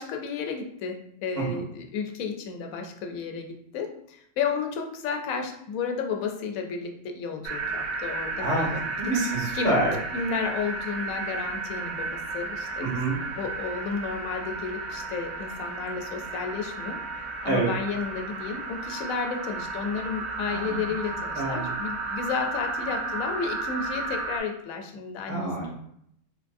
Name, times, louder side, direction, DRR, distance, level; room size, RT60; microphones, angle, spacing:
voice 1, 0.0-8.8 9.5-9.7 10.1-12.9 13.4-17.0 17.4-25.7, left 5 dB, 80° left, 4 dB, 1.0 m, -32 dB
sound 1, 7.4-24.4, right 3 dB, 90° right, 1.1 m, -33 dB
voice 2, 9.0-10.0 12.8-13.2 17.4-17.7 20.5-20.9 21.3-21.7 25.3-25.7, right 2 dB, 45° right, -5 dB, 1.5 m, -27 dB
3.9 x 2.9 x 2.5 m, 0.71 s
omnidirectional pair, 1.4 m